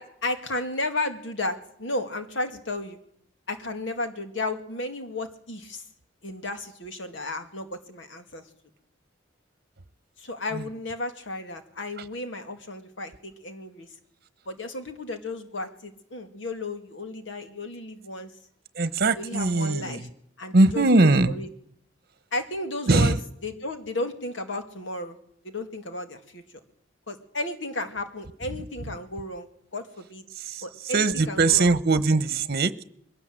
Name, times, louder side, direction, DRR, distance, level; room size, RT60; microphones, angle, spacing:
voice 1, 0.0-3.0 3.5-5.9 6.2-8.4 10.2-13.9 14.5-18.3 19.2-20.1 20.4-20.9 21.3-21.5 22.3-23.2 23.4-25.2 25.4-26.4 27.1-29.5 29.7-30.2 30.6-31.7, left 2 dB, 70° left, 7 dB, 2.2 m, -33 dB
voice 2, 18.7-20.1 20.5-21.3 22.9-23.2 30.3-32.8, right 3 dB, 55° right, 15 dB, 1.1 m, -21 dB
21.5 x 17.0 x 7.9 m, 0.69 s
head